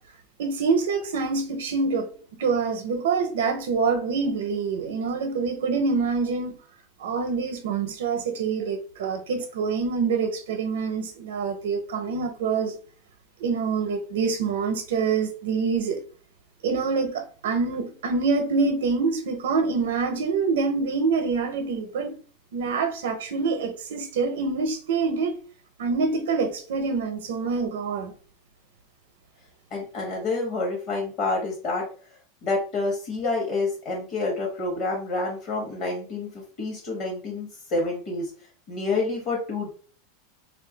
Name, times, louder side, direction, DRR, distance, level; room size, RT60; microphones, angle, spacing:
voice 1, 0.4-2.1 2.4-6.6 7.0-12.8 13.4-16.0 16.6-22.1 22.5-25.4 25.8-28.1, right 4 dB, 85° right, 0.6 m, -26 dB
voice 2, 29.7-31.9 32.4-38.3 38.7-39.7, left 3 dB, 40° left, 0.9 m, -28 dB
2.6 x 2.3 x 3.8 m
supercardioid pair, 165°, 0 cm